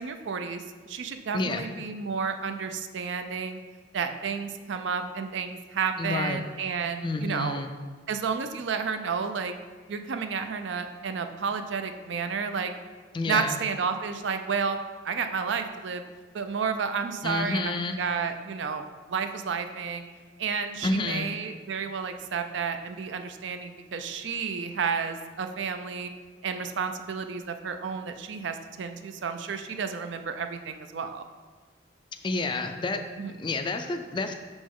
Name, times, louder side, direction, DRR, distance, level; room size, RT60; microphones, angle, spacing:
voice 1, 0.0-3.6 3.9-7.6 8.1-9.5 9.9-12.7 13.3-16.0 16.3-20.0 20.4-26.1 26.4-31.2 33.2-33.3, right 6 dB, 70° right, 8 dB, 0.4 m, -31 dB
voice 2, 1.3-1.7 6.0-6.4 7.0-7.7 13.1-13.6 17.2-18.0 20.8-21.3 32.2-33.0 33.4-34.3, left 3 dB, 25° left, 6 dB, 0.3 m, -29 dB
5.9 x 5.2 x 3.6 m, 1.4 s
head